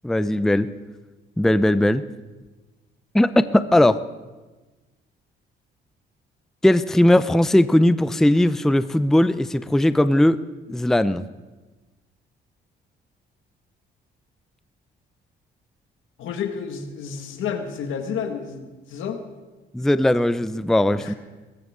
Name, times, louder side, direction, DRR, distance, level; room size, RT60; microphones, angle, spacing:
voice 1, 0.0-0.7 1.4-2.0 3.1-4.0 6.6-10.4 10.7-11.2 19.7-21.1, left 1 dB, ahead, 13 dB, 0.5 m, -18 dB
voice 2, 16.2-19.2 20.9-21.1, left 7 dB, 80° left, 6 dB, 1.7 m, -30 dB
22.5 x 13.5 x 3.7 m, 1.2 s
cardioid pair, 90°, 20 cm